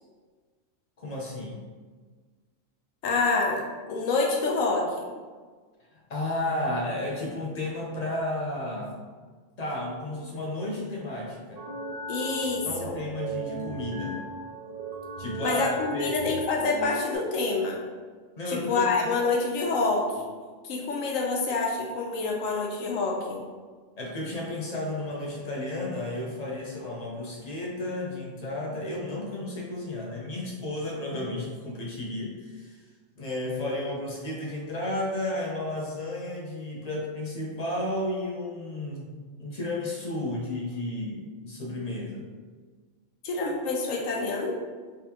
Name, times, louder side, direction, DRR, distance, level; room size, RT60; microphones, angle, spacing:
voice 1, 1.0-1.6 6.1-9.0 9.6-11.7 12.7-14.2 15.2-15.6 15.9-16.2 18.4-19.1 24.0-32.8 33.2-39.1 39.4-42.3, left 1 dB, 50° left, -2 dB, 0.5 m, -33 dB
voice 2, 3.0-5.1 12.1-13.0 15.4-17.8 18.5-20.3 20.6-23.4 43.2-44.5, left 3 dB, 80° left, 0 dB, 1.1 m, -27 dB
sound 1, 11.6-17.2, right 2 dB, 90° right, 1.0 m, -36 dB
3.4 x 3.3 x 2.9 m, 1.5 s
omnidirectional pair, 1.4 m